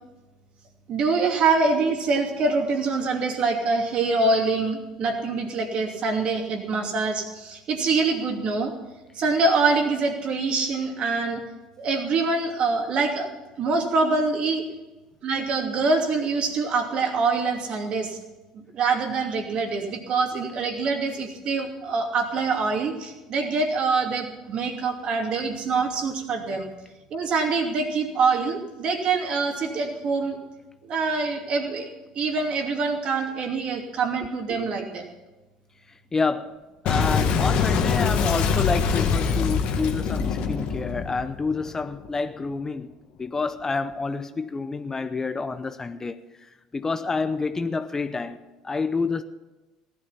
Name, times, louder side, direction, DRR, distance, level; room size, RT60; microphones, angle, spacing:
voice 1, 0.9-8.7 9.1-11.4 11.8-13.3 13.6-14.6 15.2-18.2 18.5-26.7 27.1-30.4 30.8-31.9 32.1-35.1, right 4 dB, 50° right, 2.7 m, -25 dB
voice 2, 36.1-36.6 36.8-42.9 43.2-46.2 46.7-49.2, left 4 dB, 20° left, 0.8 m, -28 dB
Boom, 36.9-42.1, left 6 dB, 60° left, 1.6 m, -24 dB
16.0 x 11.5 x 5.7 m
hypercardioid pair, 70°, 2 cm